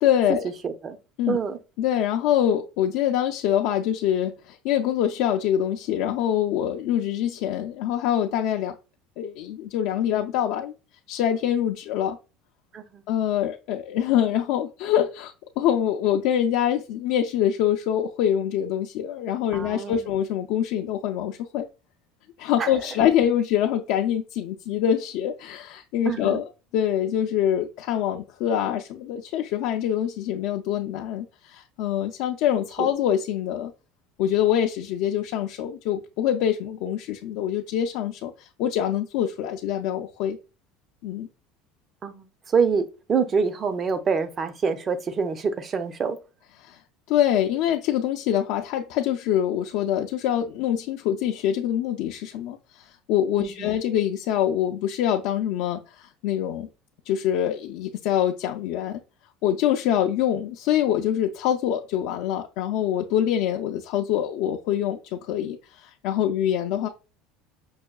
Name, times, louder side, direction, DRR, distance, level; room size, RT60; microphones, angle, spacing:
voice 1, 0.0-0.5 1.2-1.4 1.8-8.7 9.2-10.7 11.1-12.2 13.1-21.7 22.4-26.4 26.7-33.7 34.2-40.4 41.0-41.3 46.6-46.8 47.1-56.7 57.1-59.0 59.4-66.9, left 10 dB, 70° left, 0.3 m, -25 dB
voice 2, 0.6-1.0 1.3-1.6 12.7-13.0 19.5-20.1 22.6-22.7 26.1-26.4 32.8-32.9 42.0-46.2 53.4-53.7, right 5 dB, 30° right, 0.5 m, -26 dB
5.4 x 2.2 x 2.2 m
supercardioid pair, 130°, 0 cm